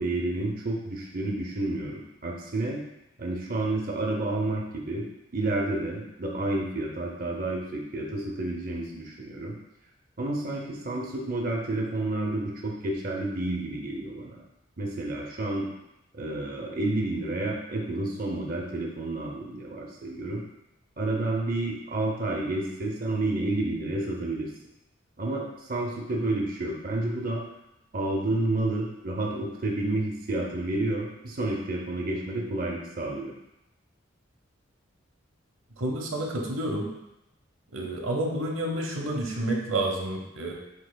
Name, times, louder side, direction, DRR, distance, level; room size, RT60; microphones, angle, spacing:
voice 1, 0.0-2.8 3.2-5.1 5.3-9.6 10.2-14.4 14.8-15.7 16.1-20.4 21.0-24.5 25.2-27.4 27.9-33.3, right 2 dB, 45° right, -1 dB, 0.6 m, -30 dB
voice 2, 35.8-36.9 37.7-40.5, right 1 dB, 90° right, 0 dB, 0.8 m, -29 dB
7.7 x 2.9 x 2.2 m, 0.88 s
head